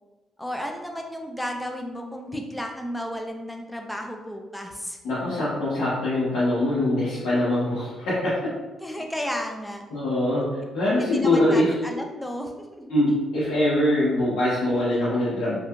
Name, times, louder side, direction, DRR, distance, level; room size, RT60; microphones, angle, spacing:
voice 1, 0.4-5.0 8.8-9.8 10.9-12.9 14.7-15.1, equal, 5° left, 3 dB, 0.4 m, -33 dB
voice 2, 5.0-8.5 9.9-11.7 12.9-15.6, left 1 dB, 85° left, -11 dB, 0.9 m, -23 dB
2.7 x 2.4 x 2.3 m, 1.2 s
cardioid pair, 90°, 0 cm